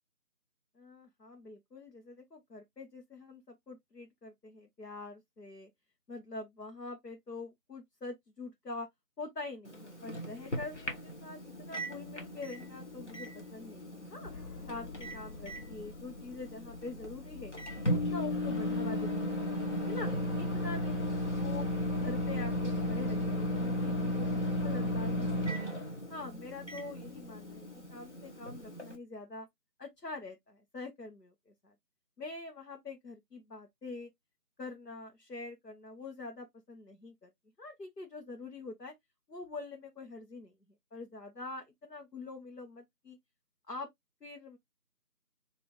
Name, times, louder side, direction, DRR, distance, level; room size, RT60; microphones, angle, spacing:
voice 1, 0.8-5.7 6.1-8.9 9.2-14.3 14.7-17.5 17.9-20.1 20.4-21.7 22.0-25.5 26.1-29.5 29.8-31.7 32.2-34.1 34.6-37.3 37.6-38.9 39.3-40.5 40.9-43.2 43.7-43.9 44.2-44.6, left 3 dB, 90° left, 1.2 m, -45 dB
Microwave oven, 9.6-29.0, left 1 dB, 45° left, 1.3 m, -35 dB
sound 1, 14.2-25.5, left 5 dB, 70° left, 0.9 m, -49 dB
4.2 x 2.8 x 3.0 m
figure-of-eight pair, 170°, 47 cm